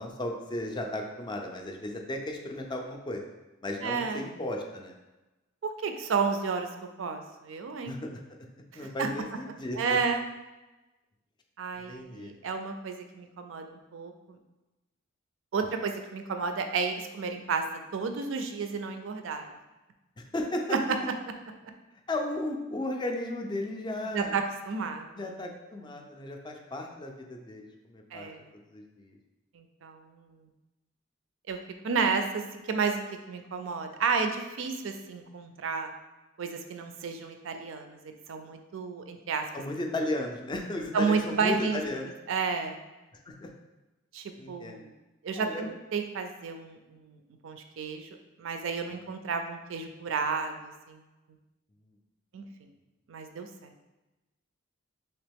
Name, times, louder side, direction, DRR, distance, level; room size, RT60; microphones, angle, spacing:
voice 1, 0.0-3.3 3.6-4.9 7.9-8.1 8.7-10.0 11.8-12.3 20.2-20.8 22.1-24.3 25.1-28.3 28.7-29.1 39.5-42.1 43.3-43.5 44.4-44.8 45.4-45.7, left 1 dB, 25° left, 3 dB, 0.4 m, -35 dB
voice 2, 3.8-4.2 5.6-6.7 7.0-7.9 8.7-9.1 9.8-10.2 11.6-14.4 15.5-17.6 17.9-19.5 20.7-20.8 24.1-25.5 28.1-28.4 29.5-30.5 31.5-31.6 31.8-33.0 33.3-35.9 36.4-39.4 40.9-41.8 42.3-42.8 44.1-44.9 45.2-47.2 47.4-48.1 48.4-51.0 52.3-52.4 53.1-53.7, right 5 dB, 70° right, 6 dB, 0.4 m, -32 dB
3.0 x 2.9 x 3.4 m, 1.1 s
head